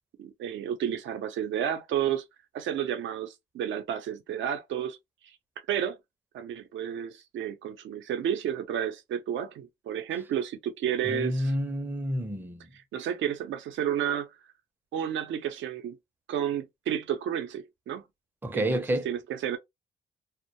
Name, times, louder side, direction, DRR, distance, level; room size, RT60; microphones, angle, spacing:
voice 1, 0.2-2.2 2.5-5.0 5.2-5.3 5.7-6.0 6.3-11.5 12.9-14.3 14.9-16.0 16.3-18.0 18.5-19.6, right 9 dB, 70° right, 0.6 m, -31 dB
voice 2, 11.0-12.7 18.4-19.1, equal, 10° right, 0.5 m, -29 dB
2.2 x 2.1 x 2.7 m
cardioid pair, 90°, 20 cm